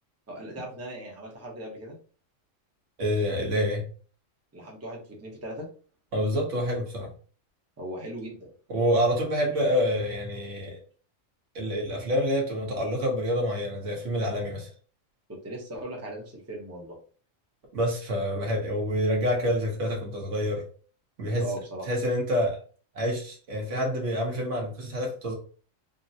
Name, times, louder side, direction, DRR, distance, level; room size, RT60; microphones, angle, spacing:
voice 1, 0.3-2.0 4.5-5.7 7.8-8.5 15.3-17.0 21.3-21.8, right 1 dB, 15° right, -1 dB, 0.7 m, -38 dB
voice 2, 3.0-3.8 6.1-7.1 8.7-10.8 11.5-14.7 17.7-20.7 21.2-21.5 21.9-22.6 22.9-25.3, equal, 70° right, 0 dB, 1.3 m, -27 dB
3.5 x 2.1 x 2.7 m, 0.40 s
omnidirectional pair, 1.3 m